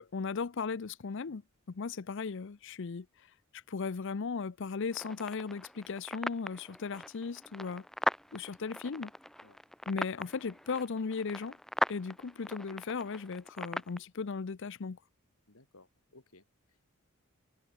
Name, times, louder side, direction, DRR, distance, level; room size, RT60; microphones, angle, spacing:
voice 1, 0.0-1.4 1.7-3.1 3.5-7.8 8.3-9.1 9.9-11.6 11.9-15.0, left 5 dB, 60° left, 0.6 m, -37 dB
sound 1, 4.9-14.0, equal, ahead, 0.9 m, -39 dB
voice 2, 15.5-16.9, left 2 dB, 80° left, 4.8 m, -61 dB
head